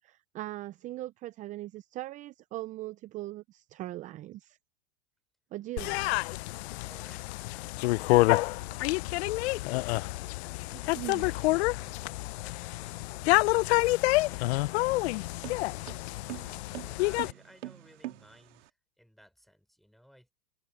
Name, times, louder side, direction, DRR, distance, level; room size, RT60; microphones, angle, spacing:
voice 1, 0.0-4.6 5.5-6.1 10.7-11.2, right 16 dB, 20° right, 0.4 m, -40 dB
sound 1, 5.7-10.9, left 8 dB, 25° left, 4.7 m, -69 dB
sound 2, 5.8-17.3, left 21 dB, 65° left, 0.5 m, -28 dB
voice 2, 10.8-13.5 16.8-20.3, equal, ahead, 4.7 m, -59 dB
sound 3, 13.9-18.7, right 16 dB, 75° right, 2.1 m, -45 dB
hypercardioid pair, 125°, 36 cm